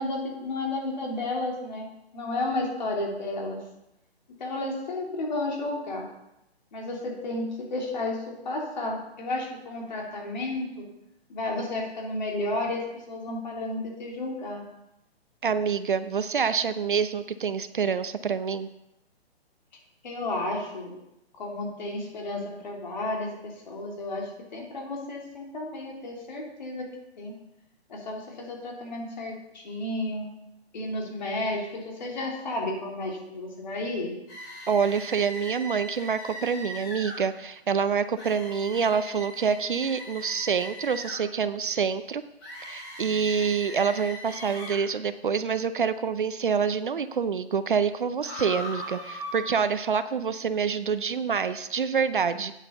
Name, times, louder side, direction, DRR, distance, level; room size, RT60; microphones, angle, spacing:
voice 1, 0.0-1.9 2.1-3.6 4.4-6.0 6.7-10.8 11.3-14.6 20.0-20.9 21.4-26.9 27.2-27.3 27.9-30.3 30.7-34.1, left 2 dB, 45° left, -1 dB, 3.3 m, -32 dB
voice 2, 15.4-18.7 34.7-42.2 42.7-52.5, right 6 dB, 50° right, 12 dB, 0.6 m, -27 dB
sound 1, 34.3-37.2 38.2-41.2 42.4-44.8 48.2-49.4, equal, 20° left, 4.8 m, -39 dB
9.1 x 8.2 x 6.8 m, 0.88 s
hypercardioid pair, 170°, 32 cm